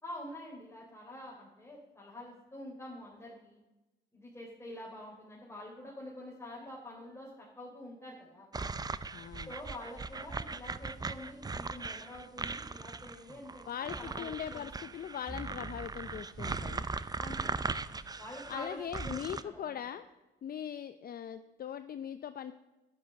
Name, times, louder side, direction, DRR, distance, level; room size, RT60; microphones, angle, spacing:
voice 1, 0.0-3.6 4.1-7.3 7.6-8.5 9.5-13.6 14.0-14.6 17.2-17.8 18.2-19.2 19.4-19.7, left 1 dB, 15° left, -5 dB, 3.7 m, -46 dB
sound 1, 8.5-19.4, right 4 dB, 20° right, 0.6 m, -39 dB
voice 2, 9.1-9.5 13.7-16.9 18.5-20.0 20.4-22.5, left 9 dB, 50° left, 11 dB, 0.6 m, -40 dB
11.5 x 10.5 x 6.7 m, 1.1 s
cardioid pair, 90°, 20 cm